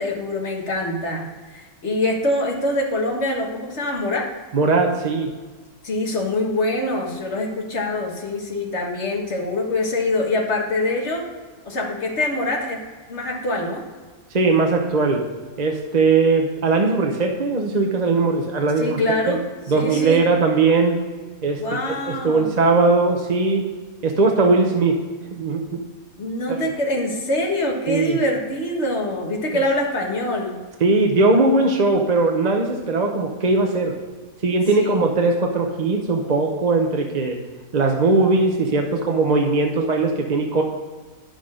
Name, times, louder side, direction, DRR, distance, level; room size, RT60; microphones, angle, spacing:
voice 1, 0.0-4.3 5.8-11.3 11.7-12.8 13.1-13.8 18.8-19.4 19.8-20.2 21.6-22.5 26.2-30.6 34.8-35.0, left 1 dB, 50° left, 0 dB, 1.8 m, -24 dB
voice 2, 4.5-5.3 14.3-15.2 15.6-19.0 19.3-19.4 19.7-21.0 21.4-23.6 24.0-25.0 25.3-25.8 26.6-26.7 27.9-28.2 30.8-34.0 34.4-37.4 37.7-40.6, right 3 dB, 35° right, 2 dB, 0.8 m, -19 dB
10.0 x 6.4 x 4.9 m, 1.4 s
omnidirectional pair, 1.5 m